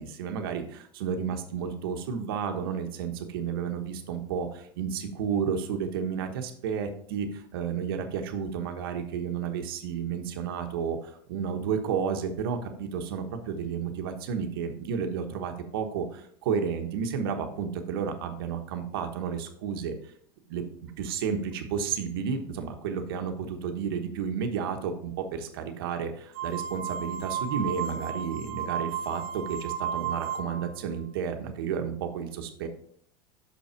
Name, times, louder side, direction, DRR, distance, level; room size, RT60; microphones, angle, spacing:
voice 1, 0.0-19.9 20.5-32.7, right 7 dB, 85° right, 5 dB, 1.1 m, -32 dB
sound 1, 26.3-30.7, right 7 dB, 50° right, 0.8 m, -34 dB
6.2 x 5.7 x 4.5 m, 0.63 s
supercardioid pair, 135°, 12 cm